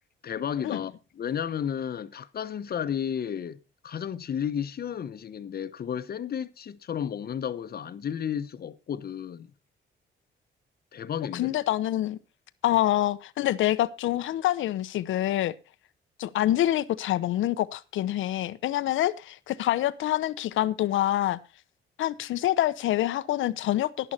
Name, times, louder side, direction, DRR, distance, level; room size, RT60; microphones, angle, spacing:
voice 1, 0.2-9.5 10.9-11.6, left 8 dB, 50° left, 1.0 m, -33 dB
voice 2, 11.3-12.2 12.6-15.5 16.2-21.4 22.0-24.1, left 13 dB, 80° left, 0.8 m, -26 dB
11.0 x 11.0 x 4.2 m
cardioid pair, 90°, 20 cm